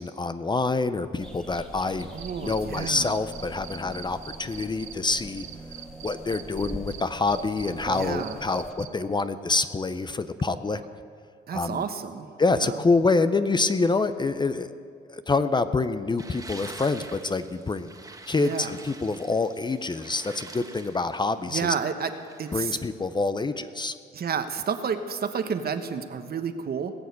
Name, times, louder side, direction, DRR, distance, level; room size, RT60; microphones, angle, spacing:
voice 1, 0.0-2.1 2.4-5.4 6.0-10.8 11.5-11.8 12.4-14.7 15.1-17.9 18.3-21.7 22.5-23.9, left 3 dB, 20° left, 11 dB, 0.6 m, -26 dB
sound 1, 1.2-8.7, equal, 5° left, 1.7 m, -42 dB
sound 2, 2.0-7.0 7.3-8.9, right 12 dB, 80° right, 1.0 m, -42 dB
voice 2, 2.1-3.2 7.9-8.4 11.5-12.8 18.3-18.8 21.5-22.1 22.4-22.8 24.1-26.9, right 6 dB, 50° right, 9 dB, 1.0 m, -31 dB
sound 3, 16.2-22.8, right 2 dB, 15° right, 1.4 m, -46 dB
19.0 x 6.4 x 8.4 m, 2.3 s
cardioid pair, 90°, 20 cm